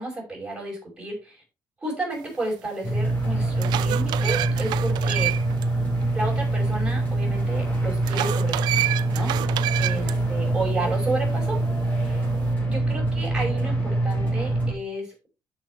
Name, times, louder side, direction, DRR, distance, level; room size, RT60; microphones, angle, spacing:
voice 1, 0.0-1.4 1.8-5.3 6.1-8.9 9.1-9.3 9.8-11.6 11.9-12.2 12.7-15.3, right 2 dB, 10° right, -2 dB, 5.8 m, -32 dB
sound 1, 2.6-2.7 3.3-5.6 6.0-6.1 8.0-10.1, right 15 dB, 80° right, 0.5 m, -28 dB
sound 2, 2.8-14.7, right 2 dB, 20° left, 4.4 m, -24 dB
12.5 x 6.0 x 3.3 m, 0.29 s
cardioid pair, 145°, 7 cm